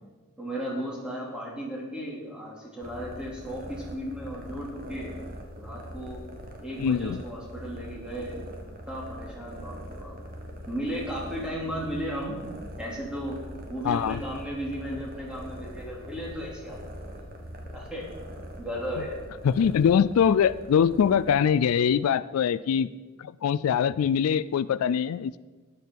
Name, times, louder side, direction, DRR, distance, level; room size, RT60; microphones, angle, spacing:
voice 1, 0.4-5.1 5.5-6.2 6.6-8.5 8.9-10.2 10.7-12.4 12.8-13.4 13.6-17.2 17.7-18.0 18.5-19.2, equal, 5° right, -4 dB, 2.8 m, -35 dB
sound 1, 2.8-22.0, equal, 40° right, 1.6 m, -42 dB
voice 2, 6.8-7.2 13.8-14.2 19.4-22.9 23.2-25.4, left 7 dB, 80° left, 17 dB, 0.3 m, -23 dB
13.0 x 10.0 x 4.6 m, 1.3 s
head